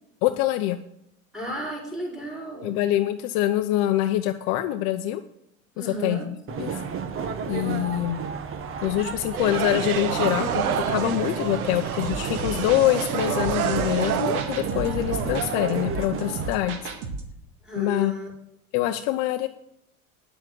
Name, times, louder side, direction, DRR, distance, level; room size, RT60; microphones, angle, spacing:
voice 1, 0.2-0.8 2.6-5.2 5.8-6.8 7.5-8.2 8.8-16.9 17.7-18.1 18.7-19.5, left 14 dB, 55° left, 8 dB, 0.8 m, -25 dB
voice 2, 1.3-2.8 5.7-6.3 17.6-18.3, right 1 dB, ahead, -2 dB, 4.9 m, -34 dB
sound 1, 6.5-16.5, right 6 dB, 30° right, 1.2 m, -32 dB
sound 2, 9.4-14.4, right 9 dB, 80° right, 1.0 m, -28 dB
sound 3, 12.0-17.3, right 4 dB, 55° right, 2.0 m, -34 dB
9.7 x 7.4 x 7.6 m, 0.80 s
hypercardioid pair, 90°, 43 cm